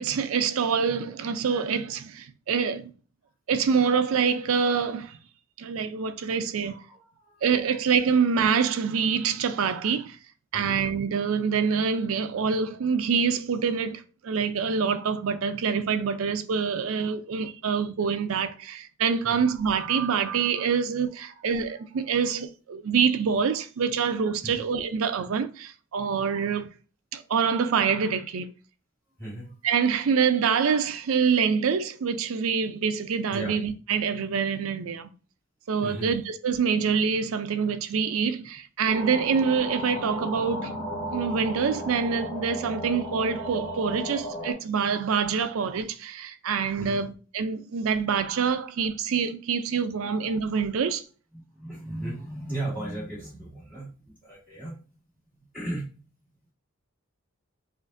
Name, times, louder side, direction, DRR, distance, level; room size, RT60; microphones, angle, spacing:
voice 1, 0.0-2.9 3.5-5.2 5.6-6.7 7.4-10.2 10.5-26.7 27.1-28.5 29.6-35.1 35.7-40.8 41.1-51.0, right 6 dB, 85° right, 0.4 m, -26 dB
voice 2, 6.6-7.5 10.5-10.9 19.2-19.4 21.3-21.4 21.7-21.8 24.4-24.6 29.2-29.5 33.3-33.5 35.8-36.1 46.8-47.0 51.3-54.7 55.3-55.9, right 1 dB, 10° right, 1.4 m, -36 dB
sound 1, 38.9-44.5, equal, 10° left, 1.4 m, -34 dB
5.0 x 2.5 x 2.5 m
head